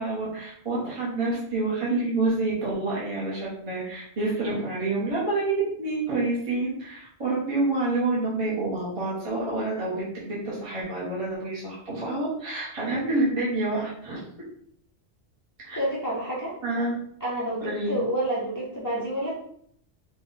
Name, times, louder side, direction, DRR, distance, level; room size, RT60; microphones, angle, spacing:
voice 1, 0.0-14.3 15.6-15.8 16.6-17.0 17.6-18.0, right 2 dB, 30° right, -7 dB, 1.1 m, -28 dB
voice 2, 15.8-16.5 17.2-19.3, right 1 dB, 20° left, -7 dB, 0.8 m, -29 dB
4.1 x 2.4 x 3.9 m, 0.68 s
omnidirectional pair, 1.2 m